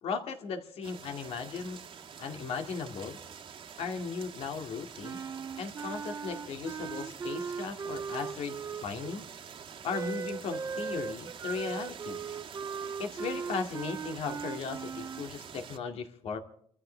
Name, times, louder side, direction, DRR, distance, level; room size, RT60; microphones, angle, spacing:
voice 1, 0.0-1.8 2.2-3.2 3.8-5.2 5.6-9.3 9.8-12.2 13.0-16.4, left 5 dB, 85° left, 5 dB, 2.2 m, -37 dB
sound 1, 0.8-15.8, right 7 dB, 60° right, 1.5 m, -47 dB
Wind instrument woodwind instrument, 5.0-9.2 9.9-15.3, right 6 dB, 35° right, 0.5 m, -38 dB
26.0 x 14.5 x 3.3 m, 0.65 s
cardioid pair, 130°, 10 cm